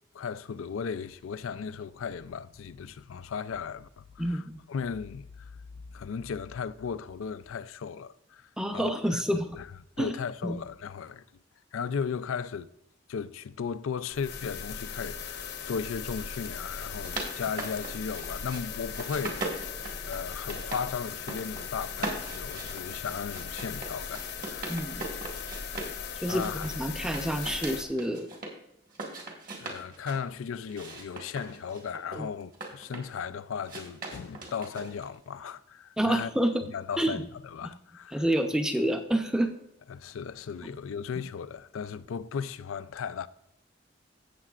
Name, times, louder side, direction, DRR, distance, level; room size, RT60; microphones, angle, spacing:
voice 1, 0.1-5.6 5.9-9.7 10.0-11.2 11.7-12.7 13.1-19.5 20.1-24.8 26.3-26.7 29.6-36.3 36.7-38.3 39.9-43.3, left 6 dB, 90° left, 0.4 m, -36 dB
voice 2, 4.2-4.6 8.6-9.4 10.0-10.2 10.4-10.6 24.7-25.0 26.2-28.3 32.2-32.3 36.0-36.6 37.0-37.2 38.1-39.5 40.6-40.7, right 1 dB, 5° right, 0.7 m, -28 dB
sound 1, 14.1-27.8, left 6 dB, 55° left, 0.8 m, -38 dB
sound 2, 16.8-18.6 18.9-20.8 21.1-21.6 21.9-26.0 26.3-28.5 28.9-30.2 30.7-33.2 33.6-35.2, right 2 dB, 45° right, 1.8 m, -39 dB
15.5 x 7.5 x 2.4 m
head